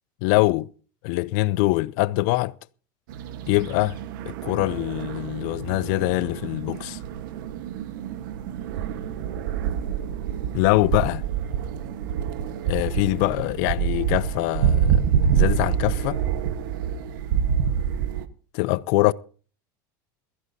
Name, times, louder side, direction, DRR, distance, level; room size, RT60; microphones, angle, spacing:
voice 1, 0.2-0.7 1.0-2.5 3.5-4.0 4.2-7.0 10.5-11.2 12.7-15.0 15.3-16.2 18.5-19.1, left 21 dB, 65° left, 0.6 m, -23 dB
sound 1, 3.1-18.3, right 8 dB, 80° right, 1.3 m, -27 dB
21.5 x 15.0 x 2.7 m
supercardioid pair, 140°, 11 cm